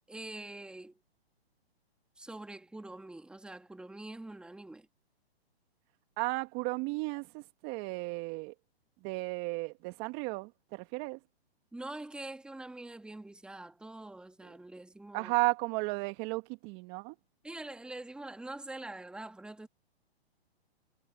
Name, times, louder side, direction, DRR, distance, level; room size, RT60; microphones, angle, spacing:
voice 1, 0.1-1.0 2.2-4.9 11.7-15.3 17.4-19.7, right 2 dB, 5° right, 2.1 m, -45 dB
voice 2, 6.2-8.5 9.0-11.2 15.1-17.2, right 26 dB, 30° right, 1.7 m, -34 dB
hypercardioid pair, 130°, 32 cm